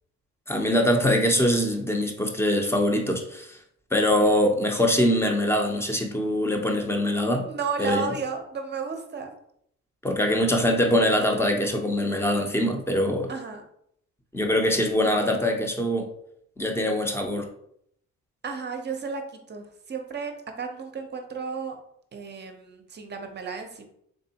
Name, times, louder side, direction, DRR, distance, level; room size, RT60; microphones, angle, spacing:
voice 1, 0.5-3.6 3.9-7.5 7.8-8.0 10.0-13.3 14.3-16.1 16.6-17.5, left 1 dB, 10° left, 3 dB, 0.7 m, -23 dB
voice 2, 7.4-9.3 13.3-13.7 18.4-21.8 22.1-23.9, right 5 dB, 35° right, 5 dB, 0.7 m, -33 dB
3.6 x 3.3 x 2.8 m, 0.72 s
cardioid pair, 90°, 30 cm